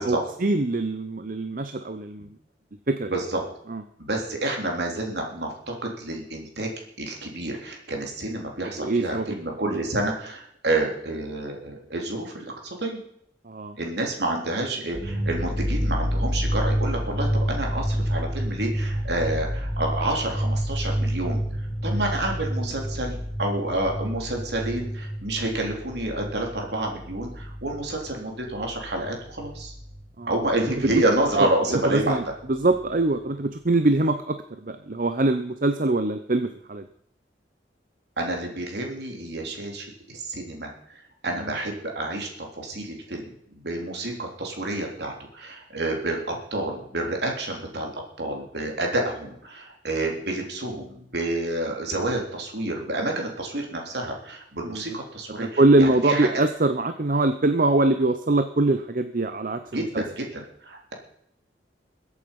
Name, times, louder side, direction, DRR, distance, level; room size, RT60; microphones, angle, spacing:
voice 1, 0.0-2.3 2.9-3.1 3.7-3.8 8.8-9.3 13.5-13.8 30.2-30.7 31.4-32.2 32.6-36.9 41.5-41.6 54.6-55.0 55.6-60.0, right 2 dB, 50° right, 9 dB, 0.8 m, -23 dB
voice 2, 3.1-3.4 4.0-6.7 7.0-13.0 13.8-21.4 21.8-29.7 30.3-32.2 38.2-56.3 59.7-60.9, right 1 dB, 65° right, 1 dB, 3.5 m, -29 dB
sound 1, 14.9-30.0 30.3-31.4 31.8-31.9 32.2-32.9, equal, 10° left, 6.6 m, -29 dB
22.5 x 8.4 x 5.4 m, 0.71 s
head